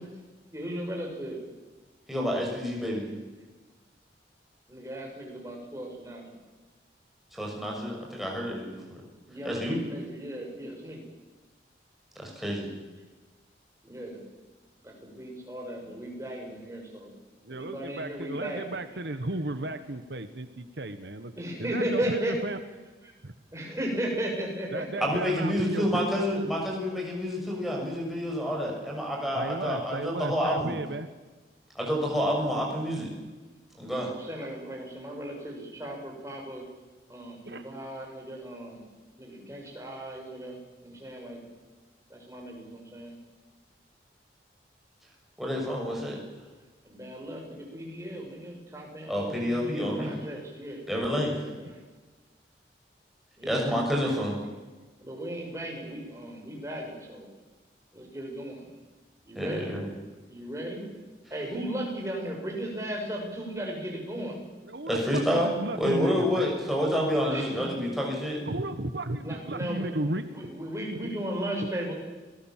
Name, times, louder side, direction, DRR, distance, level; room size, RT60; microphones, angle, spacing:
voice 1, 0.5-1.4 4.7-6.2 9.3-11.0 13.8-14.2 14.8-17.1 17.5-18.7 21.4-22.3 23.5-25.0 25.7-25.8 34.0-36.6 37.1-38.8 39.2-41.4 42.1-43.2 46.8-50.8 51.4-51.5 53.4-53.6 54.0-54.1 55.0-57.3 57.9-58.7 59.3-59.7 60.3-60.8 61.3-64.4 67.3-67.5 69.2-69.9 70.3-71.9, right 1 dB, 15° right, 0 dB, 6.3 m, -36 dB
voice 2, 2.1-3.1 7.3-9.0 9.4-9.8 12.2-12.7 25.0-30.7 31.7-33.1 33.8-34.1 45.4-46.2 49.1-50.1 50.9-51.4 53.4-54.3 59.3-59.8 64.9-68.4, equal, ahead, -2 dB, 6.6 m, -28 dB
voice 3, 17.4-21.3 21.6-22.6 23.2-23.3 24.7-26.0 29.3-31.1 37.5-37.7 64.6-66.5 68.4-70.2 71.0-71.2 71.6-71.7, right 1 dB, 75° right, 10 dB, 1.4 m, -34 dB
27.0 x 19.5 x 7.5 m, 1.3 s
head